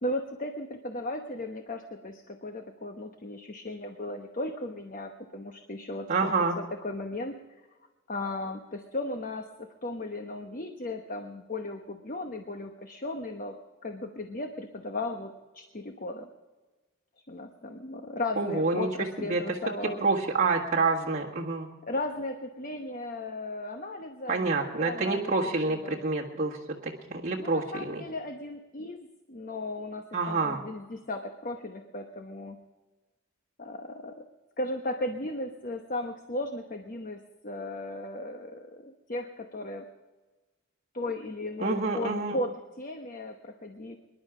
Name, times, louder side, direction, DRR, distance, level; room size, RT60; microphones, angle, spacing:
voice 1, 0.0-7.3 8.1-13.5 13.8-16.3 17.3-20.0 21.8-25.3 25.7-26.0 27.4-32.6 33.6-34.1 34.6-39.8 40.9-44.0, left 2 dB, 40° left, 5 dB, 1.0 m, -36 dB
voice 2, 6.1-6.5 18.4-18.9 19.3-19.6 20.0-21.7 24.3-28.0 30.1-30.6 41.6-42.4, right 3 dB, 40° right, -5 dB, 1.6 m, -27 dB
25.0 x 11.5 x 5.0 m, 1.2 s
head